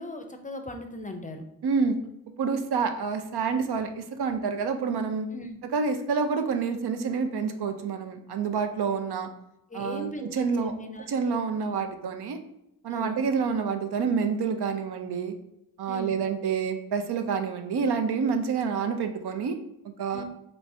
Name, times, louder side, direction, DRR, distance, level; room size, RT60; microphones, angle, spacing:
voice 1, 0.0-1.4 5.3-5.6 9.7-11.1 12.9-13.2 15.9-16.2 20.1-20.2, left 1 dB, 20° left, 5 dB, 0.5 m, -38 dB
voice 2, 1.6-2.0 2.4-5.3 5.7-9.3 9.7-10.7 11.1-12.4 12.8-15.3 15.8-19.6 20.0-20.2, right 5 dB, 85° right, 7 dB, 0.6 m, -28 dB
4.6 x 3.1 x 2.7 m, 0.83 s
wide cardioid pair, 75°, 38 cm